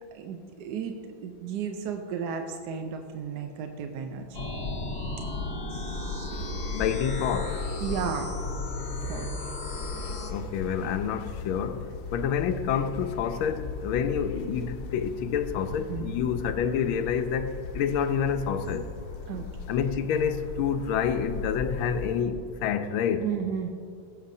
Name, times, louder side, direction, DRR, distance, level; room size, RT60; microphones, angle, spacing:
voice 1, 0.1-1.0 1.2-4.4 5.7-6.3 7.8-8.3 9.0-9.3 15.9-16.2 19.3-19.5 23.2-23.7, right 7 dB, 70° right, 1.0 m, -34 dB
sound 1, 4.3-10.3, left 2 dB, 55° left, 1.7 m, -34 dB
sound 2, 6.3-22.2, left 4 dB, 70° left, 1.4 m, -38 dB
voice 2, 6.7-7.6 10.3-18.9 19.7-23.3, left 7 dB, 85° left, 1.4 m, -28 dB
16.5 x 8.2 x 2.6 m
omnidirectional pair, 2.2 m